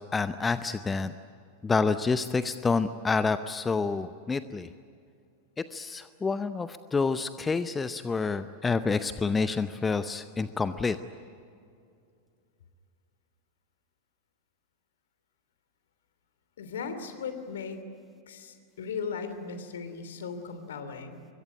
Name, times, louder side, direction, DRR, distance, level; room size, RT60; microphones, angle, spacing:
voice 1, 0.1-1.1 1.6-4.7 5.6-11.0, left 4 dB, 15° left, 13 dB, 0.7 m, -28 dB
voice 2, 16.6-17.8 18.3-21.3, left 5 dB, 60° left, 9 dB, 3.0 m, -37 dB
25.0 x 22.5 x 10.0 m, 2.4 s
figure-of-eight pair, 90°, 0 cm